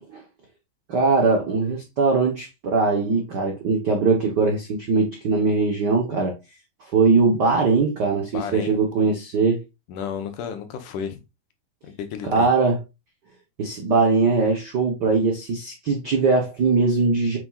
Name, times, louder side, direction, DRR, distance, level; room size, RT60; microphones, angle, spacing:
voice 1, 0.9-6.4 6.9-9.6 12.2-12.8 13.6-17.4, right 4 dB, 70° right, 1.0 m, -21 dB
voice 2, 8.3-8.8 9.9-11.2 11.8-12.5, left 7 dB, 80° left, 2.5 m, -32 dB
7.9 x 6.2 x 2.4 m
omnidirectional pair, 3.6 m